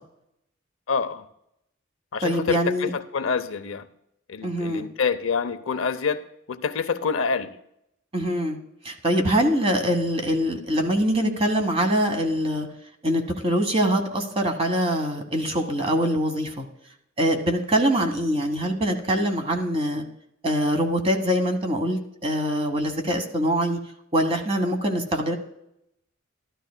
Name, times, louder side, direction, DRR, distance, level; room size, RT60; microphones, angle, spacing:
voice 1, 0.9-1.2 2.1-3.8 4.3-6.2 6.5-7.5, left 5 dB, 85° left, 10 dB, 0.6 m, -26 dB
voice 2, 2.2-2.9 4.4-4.9 8.1-8.6 8.8-12.7 13.0-16.6 17.2-20.0 20.4-23.8 24.1-25.3, equal, 30° right, 5 dB, 1.3 m, -23 dB
13.5 x 12.0 x 2.2 m, 0.78 s
head